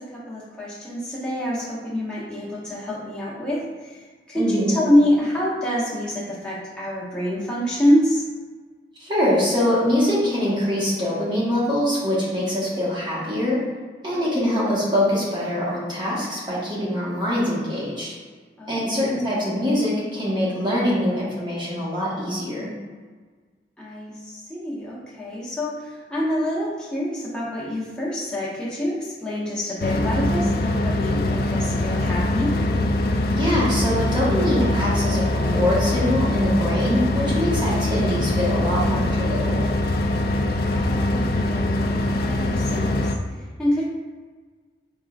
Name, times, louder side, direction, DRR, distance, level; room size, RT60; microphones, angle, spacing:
voice 1, 0.0-8.3 14.1-14.5 18.6-18.9 23.8-32.5 40.7-43.8, left 1 dB, 5° left, -7 dB, 0.9 m, -26 dB
voice 2, 4.3-4.8 9.0-13.6 14.0-18.1 18.7-22.7 33.3-39.7, left 1 dB, 25° right, -7 dB, 1.3 m, -23 dB
sound 1, 29.8-43.1, left 1 dB, 55° left, 0.3 m, -23 dB
5.0 x 3.8 x 2.4 m, 1.5 s
head